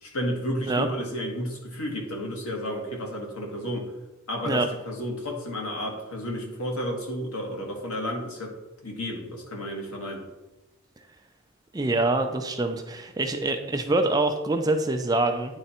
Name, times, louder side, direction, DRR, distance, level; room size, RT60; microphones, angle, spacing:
voice 1, 0.0-3.9 4.3-8.5 8.8-10.2, equal, 80° left, 0 dB, 1.6 m, -32 dB
voice 2, 11.7-15.6, right 2 dB, 15° right, 5 dB, 0.4 m, -25 dB
9.6 x 3.4 x 4.3 m, 1.0 s
head